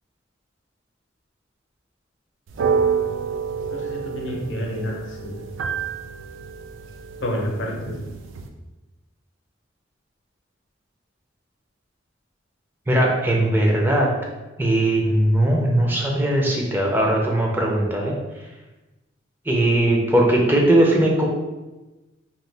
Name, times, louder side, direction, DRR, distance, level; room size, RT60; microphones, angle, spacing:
sound 1, 2.5-8.5, right 6 dB, 90° right, 0.3 m, -28 dB
voice 1, 3.7-5.4 7.2-8.0, left 1 dB, 75° left, 0 dB, 0.6 m, -29 dB
voice 2, 12.9-14.1 14.6-18.1 19.5-21.3, right 1 dB, 10° right, -2 dB, 0.4 m, -19 dB
2.9 x 2.2 x 3.2 m, 1.1 s
head